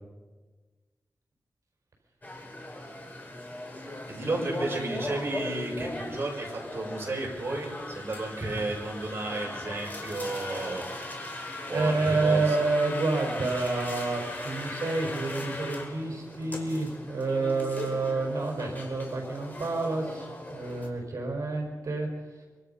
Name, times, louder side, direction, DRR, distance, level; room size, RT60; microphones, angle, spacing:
sound 1, 2.2-20.9, left 1 dB, 30° left, 4.8 m, -38 dB
voice 1, 4.1-10.8 11.7-12.6, right 2 dB, 40° right, -1 dB, 7.1 m, -33 dB
voice 2, 10.3-10.7 11.7-22.5, right 3 dB, 65° right, 1 dB, 5.2 m, -29 dB
25.5 x 25.0 x 5.7 m, 1.3 s
wide cardioid pair, 135°, 6 cm